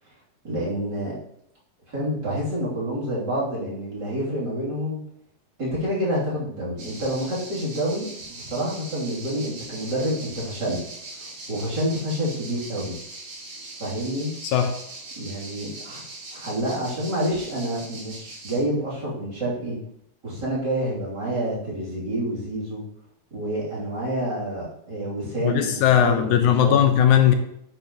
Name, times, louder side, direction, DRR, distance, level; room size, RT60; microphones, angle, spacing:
voice 1, 0.4-1.1 1.9-5.0 5.6-10.8 11.2-13.0 13.8-14.3 15.2-16.0 16.3-19.8 20.2-22.8 23.3-26.8, right 1 dB, 35° right, -8 dB, 3.4 m, -28 dB
sound 1, 6.8-18.6, right 2 dB, 90° right, 5.6 m, -40 dB
voice 2, 14.4-14.7 25.4-27.3, left 9 dB, 80° left, 6 dB, 2.1 m, -18 dB
10.5 x 8.9 x 3.0 m, 0.74 s
omnidirectional pair, 3.6 m